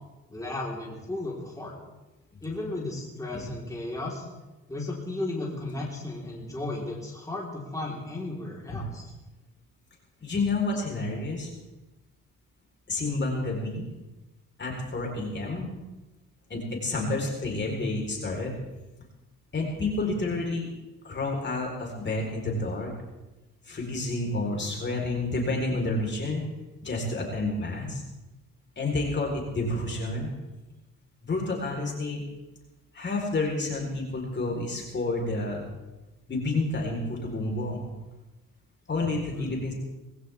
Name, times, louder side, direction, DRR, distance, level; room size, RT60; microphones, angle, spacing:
voice 1, 0.3-1.7 2.4-4.3 4.7-9.1 16.9-17.3 20.0-20.1 29.7-29.8 39.3-39.5, left 2 dB, 10° left, -4 dB, 4.0 m, -35 dB
voice 2, 10.2-11.5 12.9-13.8 14.6-15.7 16.5-18.5 19.5-20.7 21.0-22.9 23.6-26.4 26.8-28.0 28.8-30.3 31.2-32.3 32.9-35.7 36.3-37.9 38.9-39.7, left 2 dB, 35° left, 0 dB, 4.2 m, -29 dB
20.0 x 15.5 x 3.6 m, 1.0 s
cardioid pair, 90°, 30 cm